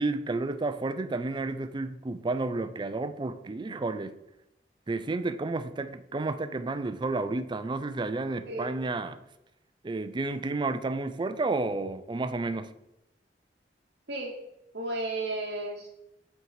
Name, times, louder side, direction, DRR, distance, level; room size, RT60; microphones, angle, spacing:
voice 1, 0.0-4.2 4.9-9.2 9.8-12.7, right 3 dB, 25° right, 0.4 m, -31 dB
voice 2, 14.7-15.9, right 2 dB, 70° right, 0.9 m, -33 dB
5.7 x 4.5 x 5.6 m
head